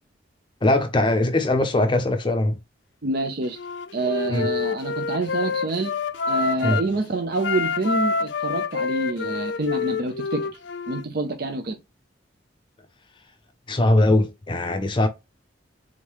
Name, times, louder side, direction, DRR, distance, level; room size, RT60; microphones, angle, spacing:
voice 1, 0.6-2.6 4.3-4.5 6.6-6.8 13.7-15.1, left 1 dB, 25° left, 0.5 m, -21 dB
voice 2, 3.0-3.6 3.9-5.9 6.3-10.5 10.9-11.8, right 2 dB, 55° right, 0.6 m, -27 dB
Wind instrument woodwind instrument, 3.5-6.9 7.4-11.0, left 4 dB, 75° left, 0.5 m, -27 dB
3.6 x 3.6 x 3.0 m
head